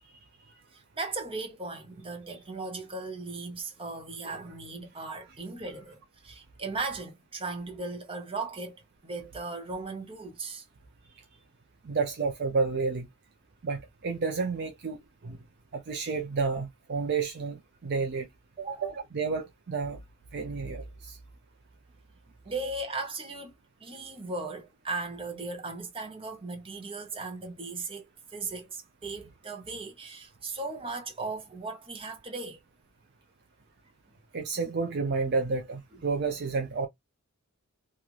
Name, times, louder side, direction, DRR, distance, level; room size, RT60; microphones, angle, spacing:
voice 1, 0.7-10.6 18.6-18.9 22.4-23.5 23.8-32.6, right 3 dB, 25° right, 0.9 m, -37 dB
voice 2, 11.8-13.1 13.6-15.4 15.7-18.3 18.8-20.0 20.3-21.2 34.3-36.9, right 4 dB, 50° right, 0.6 m, -30 dB
3.0 x 2.5 x 2.4 m
head